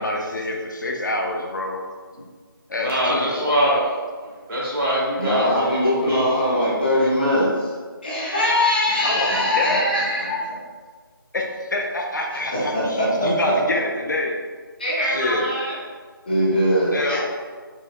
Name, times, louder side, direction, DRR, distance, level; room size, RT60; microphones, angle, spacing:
voice 1, 0.0-1.8 2.7-3.6 9.0-10.0 11.3-14.3 15.0-15.5 16.9-17.2, left 2 dB, 55° left, 0 dB, 0.5 m, -26 dB
voice 2, 2.8-3.9 4.2-6.7, equal, 70° right, -6 dB, 1.4 m, -23 dB
voice 3, 5.2-7.7 8.0-10.5 12.5-13.8 14.8-15.7 16.3-17.2, equal, 25° left, -9 dB, 0.8 m, -21 dB
4.5 x 2.1 x 2.2 m, 1.5 s
figure-of-eight pair, 175°, 12 cm